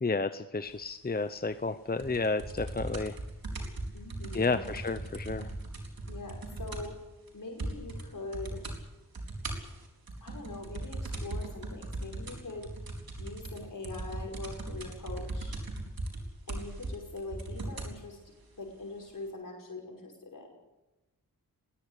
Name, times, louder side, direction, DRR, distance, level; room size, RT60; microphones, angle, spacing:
voice 1, 0.0-3.2 4.3-5.5, left 3 dB, 25° left, 10 dB, 0.8 m, -31 dB
sound 1, 2.0-7.0 7.3-7.4 7.6-8.1 8.3-8.8 9.1-18.0 18.8-18.9, right 2 dB, 75° right, 4.3 m, -38 dB
voice 2, 3.9-4.7 6.1-7.0 7.3-8.6 10.2-12.7 13.2-15.6 16.5-18.2 18.5-20.6, left 2 dB, 60° left, 0 dB, 5.6 m, -42 dB
20.5 x 17.0 x 8.4 m, 1.0 s
wide cardioid pair, 100°, 36 cm